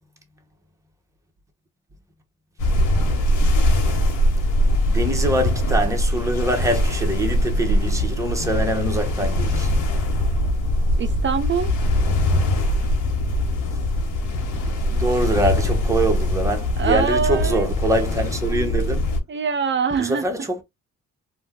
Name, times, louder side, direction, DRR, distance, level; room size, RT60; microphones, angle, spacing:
sound 1, 2.6-19.2, left 1 dB, 85° left, 1.0 m, -22 dB
voice 1, 4.9-9.7 14.9-19.1 20.0-20.6, right 1 dB, 10° right, 0.9 m, -24 dB
voice 2, 11.0-11.7 16.8-17.7 19.3-20.3, right 6 dB, 40° right, 0.4 m, -23 dB
2.6 x 2.2 x 3.4 m
cardioid pair, 90°, 30 cm